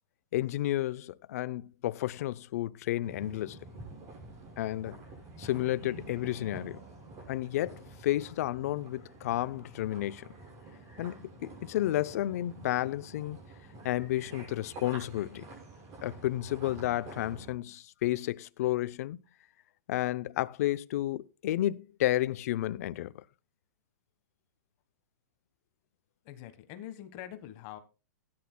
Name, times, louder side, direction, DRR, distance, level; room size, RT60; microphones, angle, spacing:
voice 1, 0.3-3.6 4.6-5.0 5.4-6.8 7.3-10.3 11.0-13.4 13.8-15.5 16.0-19.2 19.9-23.2, left 14 dB, 60° left, 0.5 m, -32 dB
sound 1, 3.0-17.5, right 2 dB, 35° right, 6.6 m, -48 dB
voice 2, 26.2-27.8, left 12 dB, 40° left, 1.3 m, -44 dB
17.0 x 10.5 x 2.2 m
hypercardioid pair, 150°, 9 cm